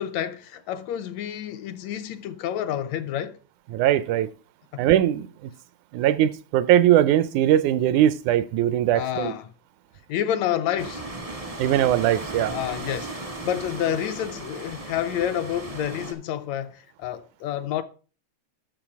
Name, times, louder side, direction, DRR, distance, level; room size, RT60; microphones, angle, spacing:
voice 1, 0.0-3.4 4.7-4.8 8.9-9.5 10.1-11.1 12.5-17.8, left 10 dB, 80° left, 1.7 m, -29 dB
voice 2, 3.7-4.3 4.8-5.5 5.9-9.3 11.6-12.5, right 12 dB, 85° right, 2.1 m, -20 dB
sound 1, 10.8-16.1, right 2 dB, 40° right, 0.4 m, -36 dB
10.0 x 6.4 x 4.8 m
omnidirectional pair, 3.4 m